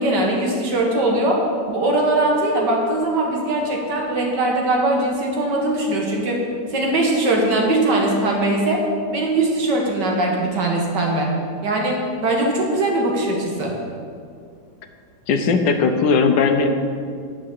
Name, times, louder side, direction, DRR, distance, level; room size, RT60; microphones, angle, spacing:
voice 1, 0.0-1.4 1.7-6.4 6.7-8.8 9.1-11.3 11.6-13.8, right 2 dB, 70° right, -1 dB, 2.1 m, -20 dB
voice 2, 15.3-16.7, left 4 dB, 75° left, 6 dB, 1.4 m, -18 dB
10.0 x 5.2 x 7.3 m, 2.3 s
omnidirectional pair, 2.0 m